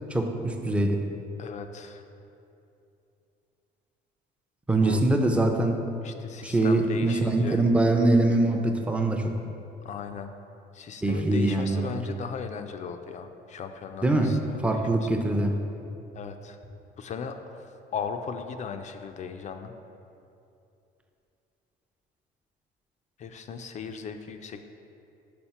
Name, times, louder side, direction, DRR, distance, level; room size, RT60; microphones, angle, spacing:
voice 1, 0.1-1.0 4.7-5.8 6.4-9.3 11.0-12.0 14.0-14.3 14.6-15.5, right 2 dB, 5° right, 4 dB, 0.5 m, -23 dB
voice 2, 1.4-2.0 4.8-5.0 6.0-7.6 9.8-10.3 10.7-15.1 16.1-16.6 17.0-17.6 17.9-19.7 23.2-24.7, left 6 dB, 45° left, 7 dB, 0.4 m, -37 dB
4.9 x 4.3 x 5.7 m, 2.7 s
cardioid pair, 110°, 17 cm